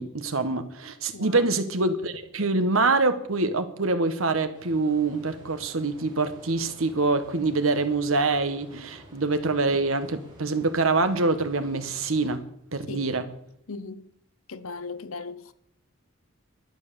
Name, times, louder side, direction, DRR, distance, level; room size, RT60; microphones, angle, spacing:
voice 1, 0.0-12.4 12.7-13.2, right 3 dB, 75° right, 1.4 m, -25 dB
voice 2, 1.1-1.5 12.9-13.1 13.7-14.1 14.5-15.5, left 4 dB, 80° left, 0.9 m, -38 dB
sound 1, 4.5-12.4, right 1 dB, 20° right, 5.3 m, -50 dB
11.5 x 9.8 x 6.9 m
head